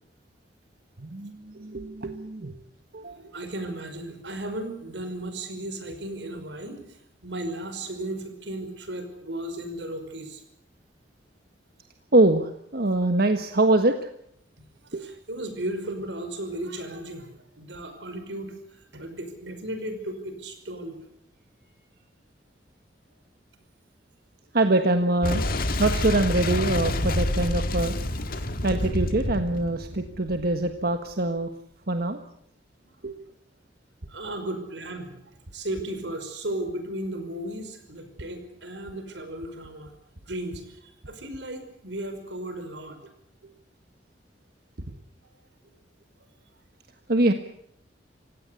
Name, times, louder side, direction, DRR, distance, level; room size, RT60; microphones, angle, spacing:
voice 1, 1.0-2.5 2.9-3.3 12.1-14.1 14.9-15.1 24.5-25.4 25.8-28.0 28.6-31.5 31.9-32.2 33.0-33.1 47.1-47.3, right 2 dB, 60° right, 7 dB, 1.5 m, -24 dB
voice 2, 3.1-10.4 14.8-18.5 18.9-21.0 28.2-28.5 34.1-39.9 40.2-43.0, right 1 dB, 85° right, 7 dB, 5.5 m, -35 dB
Boom, 25.2-30.8, left 1 dB, 55° left, 1.8 m, -28 dB
28.0 x 17.0 x 8.3 m, 0.71 s
head